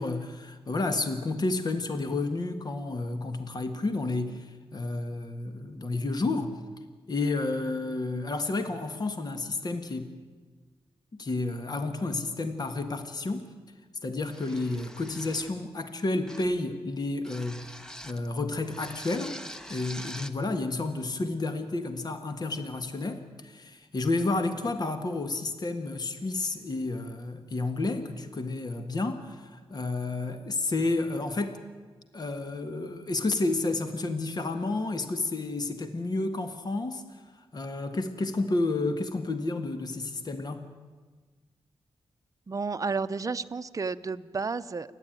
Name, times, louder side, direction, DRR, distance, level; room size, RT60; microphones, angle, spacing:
voice 1, 0.0-6.5 7.1-10.1 11.2-13.5 14.0-17.7 18.0-19.4 19.7-31.6 32.1-37.0 37.5-40.7, left 2 dB, 45° left, 8 dB, 1.7 m, -31 dB
sound 1, 14.3-15.6 16.3-16.6 17.2-18.3 18.7-20.4, equal, 5° left, 1.1 m, -44 dB
voice 2, 42.5-45.0, right 4 dB, 35° right, 10 dB, 0.7 m, -32 dB
28.0 x 11.0 x 9.3 m, 1.4 s
wide cardioid pair, 100°, 10 cm